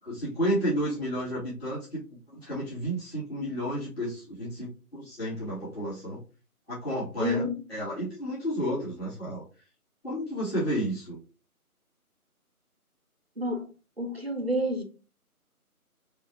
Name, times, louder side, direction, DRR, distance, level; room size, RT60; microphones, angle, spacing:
voice 1, 0.1-6.2 6.7-9.4 10.0-11.2, equal, 40° left, 2.7 m, -31 dB
voice 2, 7.2-7.6 13.4-13.7 14.0-14.8, equal, 45° right, 0.5 m, -29 dB
7.1 x 2.4 x 2.9 m
figure-of-eight pair, 175°, 45 cm